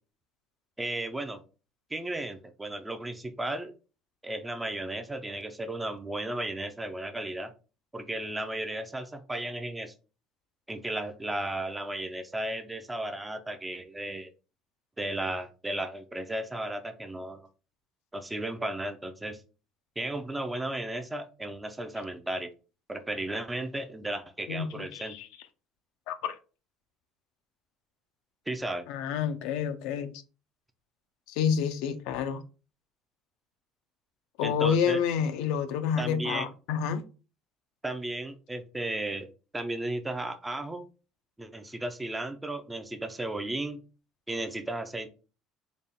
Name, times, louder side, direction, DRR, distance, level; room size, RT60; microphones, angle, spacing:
voice 1, 0.8-1.4 1.9-3.7 4.2-7.5 7.9-9.9 10.7-14.3 15.0-17.5 18.1-19.4 20.0-22.5 22.9-25.1 28.5-28.8 34.4-35.0 36.0-36.5 37.8-39.3 39.5-40.8 41.4-43.8 44.3-45.1, right 1 dB, 10° right, 0.4 m, -34 dB
voice 2, 24.5-25.3 26.1-26.4 28.9-30.1 31.3-32.4 34.4-37.0, left 7 dB, 80° left, 0.5 m, -29 dB
4.0 x 2.2 x 3.5 m
cardioid pair, 145°, 0 cm